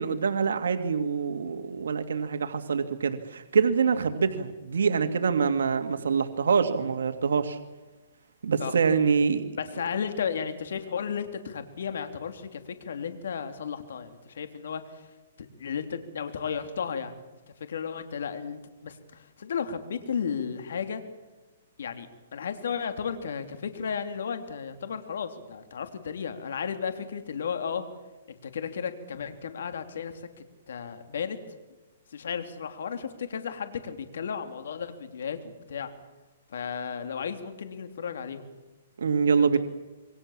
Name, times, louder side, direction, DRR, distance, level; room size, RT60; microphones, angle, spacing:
voice 1, 0.0-7.6 8.4-9.5 39.0-39.6, right 5 dB, 90° right, 7 dB, 2.1 m, -25 dB
voice 2, 9.6-15.1 15.4-17.2 17.7-21.0 21.8-22.1 22.3-27.8 28.3-31.4 32.1-35.9 36.5-38.5 39.4-39.6, left 7 dB, 75° left, 8 dB, 3.2 m, -34 dB
27.0 x 23.5 x 7.4 m, 1.2 s
hypercardioid pair, 155°, 0 cm